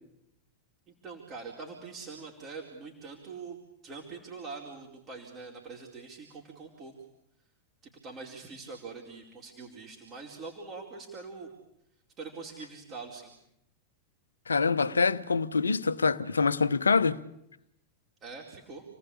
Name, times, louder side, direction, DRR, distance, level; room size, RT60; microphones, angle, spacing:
voice 1, 0.9-6.9 7.8-11.5 12.2-13.3 18.2-18.8, right 4 dB, 30° right, 4.6 m, -44 dB
voice 2, 14.5-17.2, left 4 dB, 75° left, 1.0 m, -25 dB
30.0 x 19.0 x 8.7 m
figure-of-eight pair, 90°, 0 cm